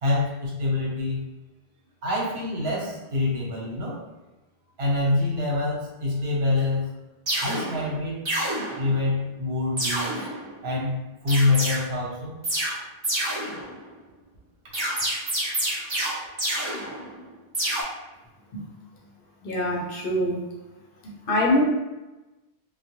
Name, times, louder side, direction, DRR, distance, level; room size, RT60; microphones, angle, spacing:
voice 1, 0.0-1.2 2.0-4.0 4.8-6.9 7.4-8.2 8.8-10.2 10.6-12.4, left 2 dB, 80° right, -4 dB, 1.0 m, -25 dB
sound 1, 6.6-6.7 7.3-7.9 8.3-9.1 9.8-10.5 11.3-11.8 12.4-12.8 13.0-13.9 14.7-17.3 17.5-17.8, right 1 dB, 35° right, 0.5 m, -28 dB
voice 2, 19.4-20.4 21.0-21.6, left 1 dB, 65° left, -1 dB, 0.7 m, -24 dB
2.2 x 2.1 x 2.8 m, 1.1 s
omnidirectional pair, 1.0 m